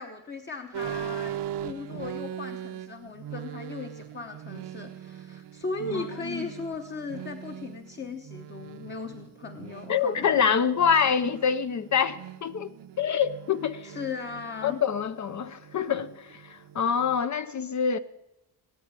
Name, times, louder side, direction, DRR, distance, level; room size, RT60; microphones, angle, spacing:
voice 1, 0.0-10.7 13.8-14.8, left 4 dB, 25° left, 0.9 m, -37 dB
sound 1, 0.7-17.3, right 11 dB, 80° right, 0.9 m, -41 dB
voice 2, 5.9-6.5 9.9-12.7 13.0-13.9 14.6-18.0, left 7 dB, 45° left, 0.6 m, -26 dB
17.5 x 8.4 x 9.6 m
wide cardioid pair, 180°, 40 cm